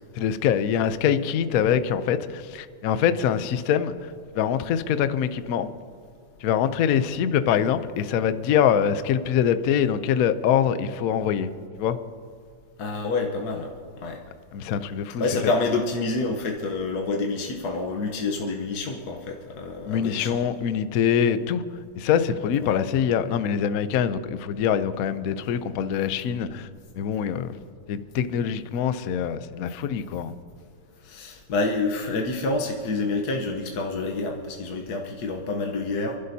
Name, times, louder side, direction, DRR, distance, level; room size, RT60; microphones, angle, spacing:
voice 1, 0.1-5.7 6.4-11.5 11.8-12.0 14.5-15.5 19.9-21.6 21.9-26.7 26.9-27.5 27.9-30.3, left 8 dB, 80° left, 11 dB, 0.7 m, -24 dB
voice 2, 12.8-13.7 14.0-14.2 15.2-20.4 22.6-22.8 31.0-36.2, left 3 dB, 55° left, 2 dB, 1.3 m, -28 dB
29.0 x 11.5 x 2.8 m, 2.2 s
omnidirectional pair, 2.3 m